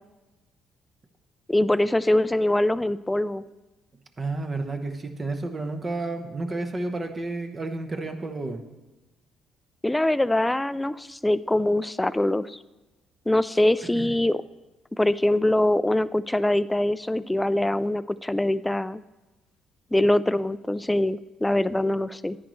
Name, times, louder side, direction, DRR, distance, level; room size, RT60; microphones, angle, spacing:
voice 1, 1.5-3.4 9.8-12.6 13.3-14.4 14.9-19.0 19.9-22.4, left 1 dB, 10° left, 17 dB, 0.3 m, -23 dB
voice 2, 4.2-8.6 13.9-14.1, right 2 dB, 35° right, 6 dB, 1.0 m, -31 dB
10.0 x 9.3 x 3.1 m, 1.1 s
hypercardioid pair, 55°, 0 cm